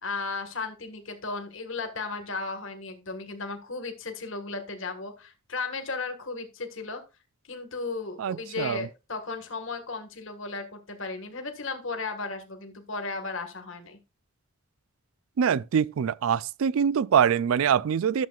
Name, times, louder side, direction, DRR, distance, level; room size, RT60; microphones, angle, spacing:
voice 1, 0.0-7.0 7.4-14.0, left 3 dB, 60° left, 1.6 m, -35 dB
voice 2, 8.2-8.9 15.4-18.3, right 7 dB, 75° right, 0.3 m, -24 dB
12.0 x 7.4 x 2.4 m
head